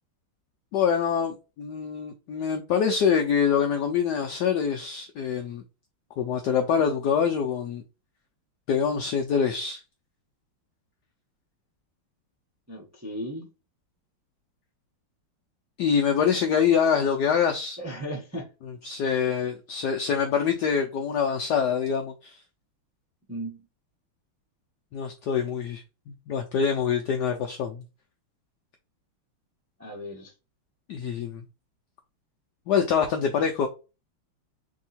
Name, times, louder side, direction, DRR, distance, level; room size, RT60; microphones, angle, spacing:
voice 1, 0.7-5.6 6.2-7.8 8.7-9.8 15.8-17.8 18.6-22.4 24.9-27.8 30.9-31.4 32.7-33.7, left 7 dB, 90° left, 0.9 m, -25 dB
voice 2, 12.7-13.5 17.8-18.5 23.3-23.6 29.8-30.3, equal, 15° right, 0.5 m, -36 dB
3.6 x 2.8 x 4.1 m
omnidirectional pair, 2.4 m